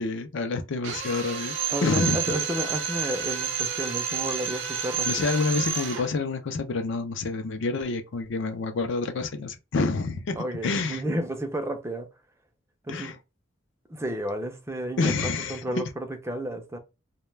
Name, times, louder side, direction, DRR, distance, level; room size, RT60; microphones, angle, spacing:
voice 1, 0.0-1.5 1.8-2.2 5.0-10.4 10.6-11.0 12.9-13.2 15.0-15.6, left 3 dB, 60° left, 0.5 m, -28 dB
Drill, 0.8-6.1, right 7 dB, 65° right, 0.5 m, -30 dB
voice 2, 1.7-5.1 10.4-12.1 12.9-13.1 13.9-16.8, right 1 dB, 15° right, 0.4 m, -32 dB
2.2 x 2.2 x 3.1 m
head